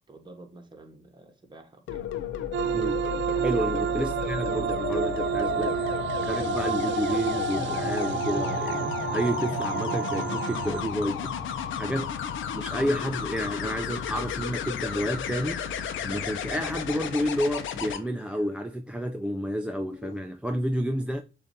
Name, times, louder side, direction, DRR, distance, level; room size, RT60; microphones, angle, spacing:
voice 1, 0.1-2.1 3.6-4.0 11.8-12.1, right 2 dB, 25° right, 1.2 m, -48 dB
sound 1, 1.9-18.0 19.9-20.2, left 8 dB, 75° left, 0.6 m, -33 dB
sound 2, 2.5-10.8, right 10 dB, 70° right, 0.4 m, -30 dB
voice 2, 3.4-12.1 12.5-21.2, equal, 5° right, 0.4 m, -30 dB
sound 3, 10.5-17.2, left 1 dB, 40° left, 0.8 m, -45 dB
6.8 x 2.6 x 2.6 m
cardioid pair, 90°, 20 cm